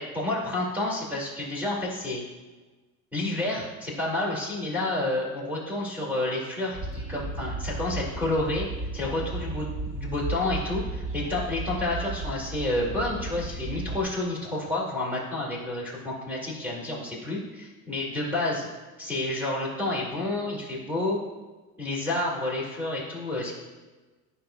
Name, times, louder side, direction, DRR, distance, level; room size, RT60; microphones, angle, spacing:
voice 1, 0.0-2.2 3.1-8.7 8.9-18.7 19.0-21.2 21.8-23.5, left 2 dB, 5° right, -6 dB, 2.2 m, -30 dB
Train, 6.7-14.0, right 2 dB, 60° right, 2.4 m, -34 dB
12.5 x 5.7 x 2.3 m, 1.3 s
cardioid pair, 150°, 34 cm